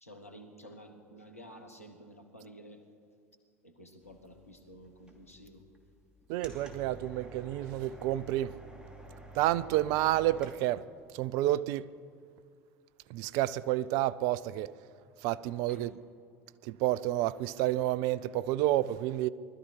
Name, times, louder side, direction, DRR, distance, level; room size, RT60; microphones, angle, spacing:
voice 1, 0.0-2.8 3.6-5.6 15.7-15.9, equal, 90° left, 1.4 m, -51 dB
sound 1, 4.0-10.6, right 1 dB, 10° right, 2.6 m, -51 dB
voice 2, 6.3-8.5 9.3-10.8 11.1-11.9 13.1-14.7 15.2-15.9 16.6-19.3, right 14 dB, 55° right, 0.4 m, -30 dB
20.0 x 13.0 x 4.8 m
figure-of-eight pair, 70°, 8 cm